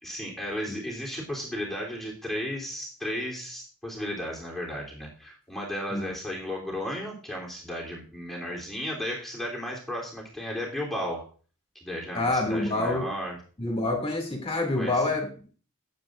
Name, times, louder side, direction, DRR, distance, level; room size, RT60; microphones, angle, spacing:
voice 1, 0.0-11.3 11.8-13.4 14.8-15.1, equal, ahead, -3 dB, 3.3 m, -34 dB
voice 2, 12.1-13.1 13.6-15.3, left 2 dB, 25° left, 1 dB, 2.5 m, -27 dB
17.0 x 8.3 x 2.6 m, 0.40 s
head